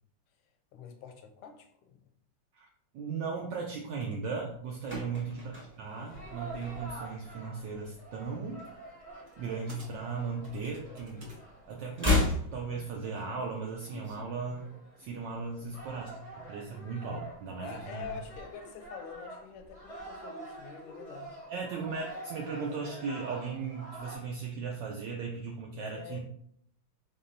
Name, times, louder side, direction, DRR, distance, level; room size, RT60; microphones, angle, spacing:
voice 1, 0.7-2.0 4.9-5.2 17.6-21.4 25.8-26.2, left 6 dB, 85° left, 6 dB, 1.5 m, -46 dB
voice 2, 2.9-8.6 9.4-11.3 11.7-14.7 15.0-16.2 16.5-18.1 21.5-26.2, right 5 dB, 75° right, 0 dB, 1.0 m, -37 dB
sound 1, 4.5-7.2 7.4-7.7 8.0-9.5 9.8-11.1 11.4-13.5 13.7-13.8, left 2 dB, 10° right, 0.8 m, -33 dB
sound 2, 6.1-24.2, right 2 dB, 40° left, 0.5 m, -47 dB
sound 3, 9.3-9.4 9.7-11.4 11.7-14.2, equal, 50° right, 1.3 m, -52 dB
4.1 x 3.7 x 2.6 m, 0.68 s
omnidirectional pair, 2.3 m